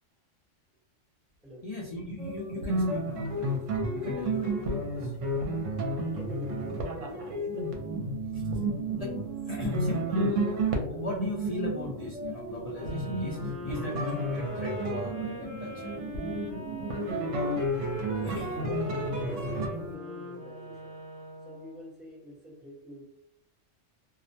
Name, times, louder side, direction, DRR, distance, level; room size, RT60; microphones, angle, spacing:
voice 1, 1.6-3.5 3.9-5.1 5.5-5.6 8.9-9.1 9.4-15.9 18.2-18.5, left 2 dB, 55° left, -6 dB, 0.4 m, -37 dB
sound 1, 2.2-20.0, right 1 dB, 75° right, 0.9 m, -32 dB
voice 2, 5.7-7.6 17.3-17.7 18.1-21.0 21.4-23.0, right 1 dB, ahead, -7 dB, 0.8 m, -45 dB
sound 2, 12.7-21.9, left 1 dB, 40° right, 0.9 m, -42 dB
2.4 x 2.1 x 2.6 m, 0.73 s
omnidirectional pair, 1.3 m